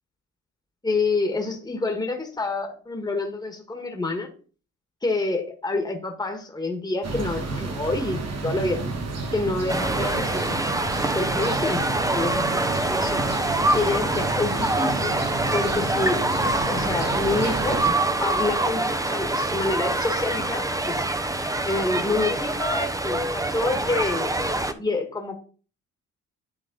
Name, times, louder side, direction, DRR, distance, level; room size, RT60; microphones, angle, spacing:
voice 1, 0.8-4.3 5.0-8.8 9.3-10.8 11.1-11.8 12.1-13.2 13.7-15.2 15.5-16.2 16.6-21.0 21.6-24.3 24.7-25.4, left 3 dB, 15° left, 3 dB, 1.5 m, -27 dB
sound 1, 7.0-17.9, right 3 dB, 55° right, 1.8 m, -31 dB
sound 2, 9.7-24.7, right 2 dB, 10° right, 0.7 m, -25 dB
10.5 x 3.7 x 3.9 m, 0.39 s
cardioid pair, 90°, 30 cm